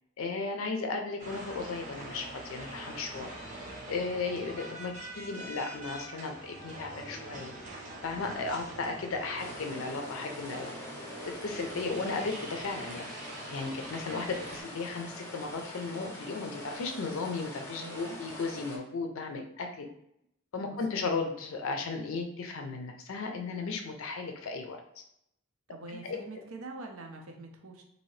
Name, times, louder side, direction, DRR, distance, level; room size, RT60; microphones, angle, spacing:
voice 1, 0.2-7.5 8.0-10.7 11.2-13.1 13.5-19.9 20.5-25.0 26.0-26.2, left 4 dB, 70° left, 4 dB, 0.4 m, -35 dB
sound 1, 1.2-14.6, right 1 dB, 35° right, 0.7 m, -44 dB
sound 2, 9.4-18.8, equal, 10° left, 0.5 m, -45 dB
voice 2, 17.8-18.2 20.6-21.2 25.7-27.8, right 3 dB, 75° right, 3 dB, 0.6 m, -45 dB
2.7 x 2.7 x 3.1 m, 0.76 s
head